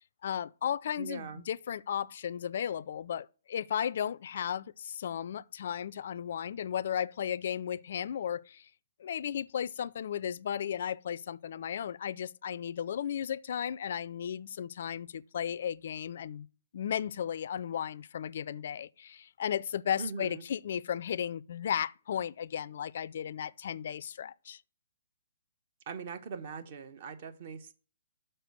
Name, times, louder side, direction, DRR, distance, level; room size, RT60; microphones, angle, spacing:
voice 1, 0.2-8.7 9.0-16.5 16.7-24.6, left 9 dB, 55° left, 0.3 m, -35 dB
voice 2, 1.0-1.5 20.0-20.4 25.9-27.7, right 5 dB, 45° right, 1.0 m, -41 dB
6.7 x 4.4 x 6.3 m
figure-of-eight pair, 130°, 0 cm